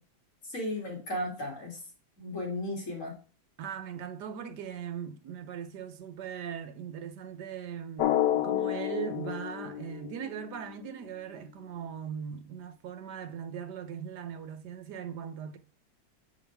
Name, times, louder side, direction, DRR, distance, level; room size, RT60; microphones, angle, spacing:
voice 1, 0.4-1.8 2.2-3.1, left 1 dB, 45° left, 3.1 m, -35 dB
voice 2, 3.6-15.6, right 8 dB, 80° right, 1.4 m, -39 dB
Drum, 8.0-10.6, left 12 dB, 85° left, 1.3 m, -30 dB
7.2 x 6.1 x 3.4 m
omnidirectional pair, 1.8 m